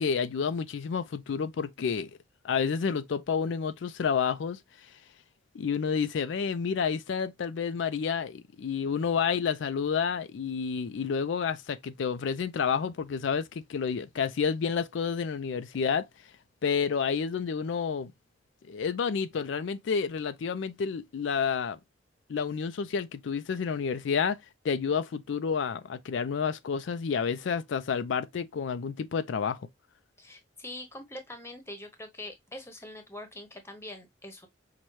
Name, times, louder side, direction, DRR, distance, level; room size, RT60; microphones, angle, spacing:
voice 1, 0.0-2.1 2.4-4.9 5.5-16.1 16.6-18.1 18.7-21.8 22.3-24.4 24.6-29.7, left 6 dB, 75° left, 0.4 m, -30 dB
voice 2, 30.2-34.5, left 1 dB, 15° left, 0.9 m, -43 dB
5.5 x 2.2 x 3.0 m
head